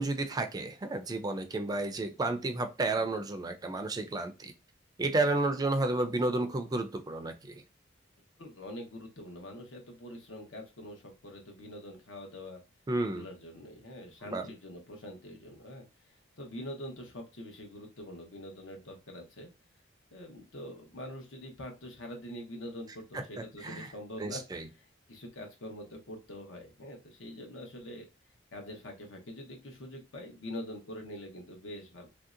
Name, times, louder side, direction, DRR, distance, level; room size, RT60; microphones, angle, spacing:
voice 1, 0.0-4.5 5.0-7.6 12.9-13.2 14.3-14.4 23.1-23.2 23.6-23.9 24.2-24.7, right 2 dB, 20° right, 8 dB, 0.3 m, -31 dB
voice 2, 8.4-12.6 13.0-19.5 20.1-24.4 24.8-28.0 28.5-32.1, left 1 dB, 85° left, 2 dB, 0.9 m, -44 dB
3.1 x 2.7 x 2.4 m, 0.28 s
head